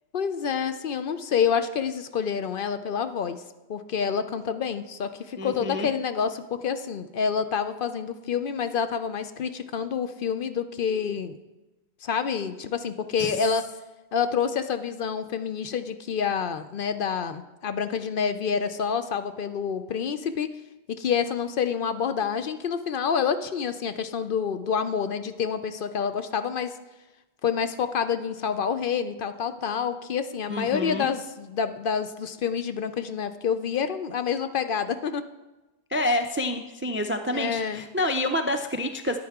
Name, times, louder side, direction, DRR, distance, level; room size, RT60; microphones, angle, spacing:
voice 1, 0.1-3.4 3.7-11.4 12.0-13.6 14.1-20.5 20.9-26.7 27.4-35.2 37.3-37.8, left 6 dB, 60° left, 10 dB, 0.7 m, -28 dB
voice 2, 5.4-5.9 13.2-13.4 30.5-31.1 35.9-39.2, left 1 dB, 20° right, 6 dB, 0.3 m, -28 dB
13.0 x 9.4 x 3.6 m, 1.1 s
omnidirectional pair, 1.1 m